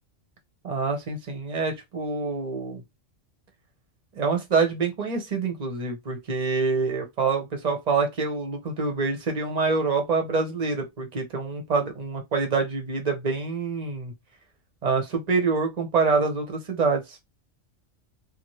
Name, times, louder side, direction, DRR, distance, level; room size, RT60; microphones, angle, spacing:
voice 1, 0.6-2.8 4.1-14.1 14.8-17.2, right 4 dB, 40° right, 0.9 m, -26 dB
2.7 x 2.5 x 3.0 m
omnidirectional pair, 1.2 m